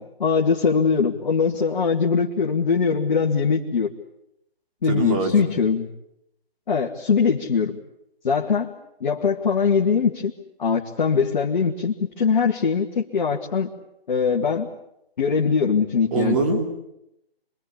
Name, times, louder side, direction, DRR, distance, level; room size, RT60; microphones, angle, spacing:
voice 1, 0.0-3.9 4.8-5.9 6.7-7.8 8.2-8.7 9.0-10.3 10.6-13.7 14.1-14.7 15.2-16.6, left 5 dB, 45° left, 0 dB, 2.2 m, -22 dB
voice 2, 4.9-5.5 16.1-16.6, right 5 dB, 35° right, 2 dB, 3.1 m, -23 dB
27.0 x 23.5 x 8.6 m, 0.81 s
figure-of-eight pair, 150°, 31 cm